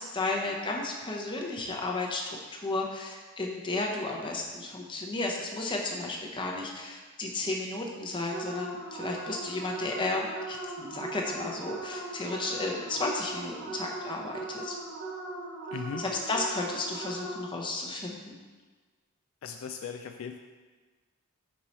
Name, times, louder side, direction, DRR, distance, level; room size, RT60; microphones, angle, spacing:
voice 1, 0.0-2.2 2.5-14.7 16.0-18.4, left 2 dB, 20° left, -1 dB, 0.7 m, -33 dB
sound 1, 8.3-17.7, right 2 dB, 45° right, 1.4 m, -39 dB
voice 2, 15.7-16.0 19.4-20.4, left 6 dB, 60° left, 5 dB, 0.3 m, -38 dB
5.4 x 4.6 x 4.1 m, 1.3 s
head